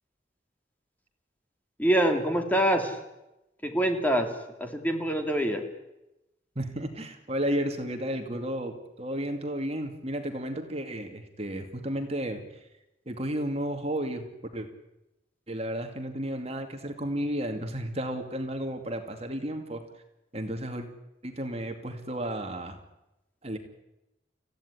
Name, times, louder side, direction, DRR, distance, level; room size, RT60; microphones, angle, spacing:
voice 1, 1.8-3.0 3.6-5.6, right 1 dB, 10° left, 4 dB, 2.7 m, -25 dB
voice 2, 6.6-12.4 13.1-14.2 14.5-14.7 15.5-19.8 20.3-20.9 21.2-22.8 23.4-23.6, right 1 dB, 35° right, 5 dB, 2.4 m, -32 dB
29.0 x 16.0 x 9.9 m, 0.94 s
head